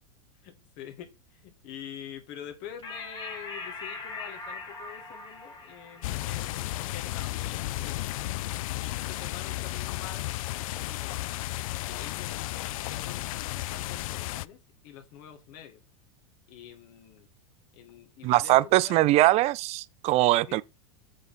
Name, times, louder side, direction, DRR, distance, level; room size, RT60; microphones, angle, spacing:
voice 1, 0.4-8.4 8.8-10.3 10.6-11.3 11.8-14.6 14.8-15.8 16.5-17.3 17.7-19.0 20.5-20.6, left 9 dB, 50° left, 1.9 m, -46 dB
sound 1, 2.8-9.7, left 3 dB, 20° left, 2.0 m, -43 dB
Gentle Rain, 6.0-14.4, left 17 dB, 70° left, 0.4 m, -33 dB
voice 2, 18.2-20.6, right 17 dB, 35° right, 0.4 m, -22 dB
7.5 x 4.0 x 4.1 m
hypercardioid pair, 120°, 18 cm